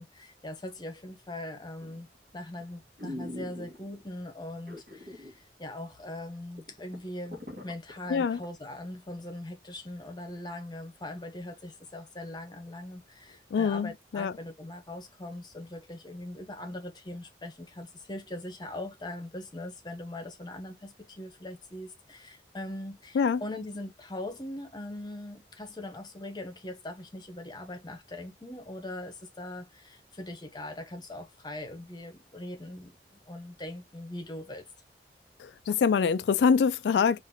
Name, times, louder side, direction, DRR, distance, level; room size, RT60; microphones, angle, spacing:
voice 1, 0.0-2.1 2.3-7.4 7.6-32.9 33.3-34.7, left 1 dB, 25° left, 0.9 m, -41 dB
sound 1, 1.8-2.2 2.6-2.7 3.0-4.0 4.7-5.4 5.7-5.8 6.2-6.3 6.6-8.5 8.9-9.0, left 1 dB, 50° right, 1.4 m, -42 dB
voice 2, 13.5-14.3 23.1-23.4 35.4-37.2, left 6 dB, 75° left, 0.3 m, -25 dB
3.9 x 2.6 x 2.6 m
head